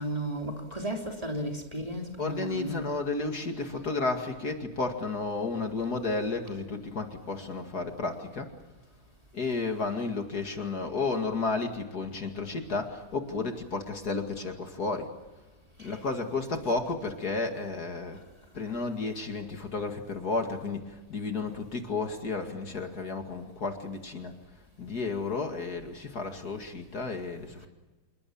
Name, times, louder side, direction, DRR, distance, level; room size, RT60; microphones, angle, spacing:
voice 1, 0.0-2.9 15.8-16.0, right 1 dB, 20° right, 2 dB, 3.1 m, -34 dB
voice 2, 2.2-8.5 9.3-15.1 15.8-18.2 18.5-24.3 24.8-27.7, left 3 dB, 50° left, 5 dB, 2.7 m, -32 dB
28.0 x 22.0 x 7.2 m, 1.2 s
omnidirectional pair, 2.1 m